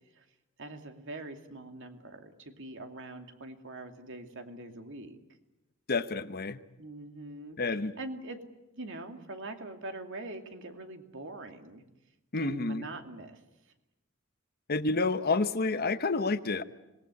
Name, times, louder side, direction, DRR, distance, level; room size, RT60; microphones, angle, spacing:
voice 1, 0.6-5.2 6.8-7.6 8.0-8.4 8.7-11.8 12.4-13.4, right 2 dB, 60° right, 5 dB, 2.5 m, -43 dB
voice 2, 5.9-6.6 7.6-7.9 12.3-12.8 14.7-16.6, left 3 dB, 45° left, 12 dB, 1.0 m, -29 dB
26.5 x 19.5 x 9.6 m, 0.98 s
head